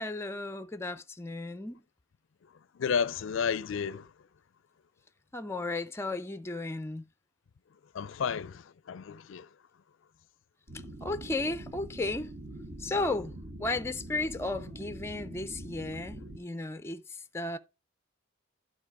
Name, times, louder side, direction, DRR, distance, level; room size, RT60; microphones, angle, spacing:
voice 1, 0.0-1.8 5.3-7.0 11.0-12.3 12.8-13.3 13.6-17.6, left 2 dB, 15° left, 0.5 m, -34 dB
voice 2, 2.8-4.1 7.9-9.5, left 6 dB, 70° left, 0.4 m, -32 dB
sound 1, 10.7-16.4, right 1 dB, 50° right, 1.3 m, -44 dB
11.5 x 4.0 x 4.7 m
head